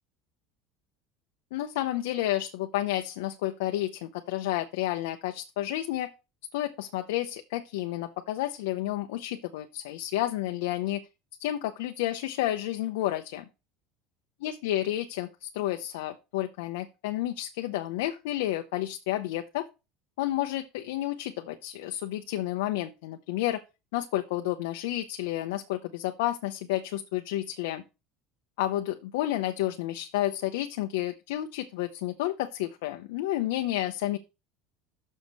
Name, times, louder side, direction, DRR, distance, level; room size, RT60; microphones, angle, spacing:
voice 1, 1.5-6.1 6.5-11.0 11.4-13.4 14.4-19.7 20.2-23.6 23.9-27.8 28.6-34.2, left 14 dB, 90° left, 6 dB, 0.7 m, -31 dB
6.5 x 6.3 x 5.3 m, 0.28 s
cardioid pair, 150°, 0 cm